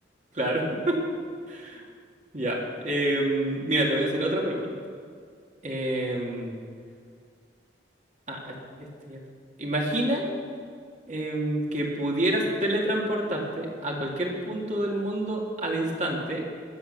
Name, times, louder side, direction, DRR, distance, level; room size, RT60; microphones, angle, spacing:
voice 1, 0.3-1.0 1.5-1.8 2.3-4.7 5.6-6.5 8.3-9.2 9.6-10.3 11.1-16.4, right 1 dB, 40° right, -2 dB, 2.2 m, -28 dB
21.0 x 7.2 x 6.9 m, 2.1 s
head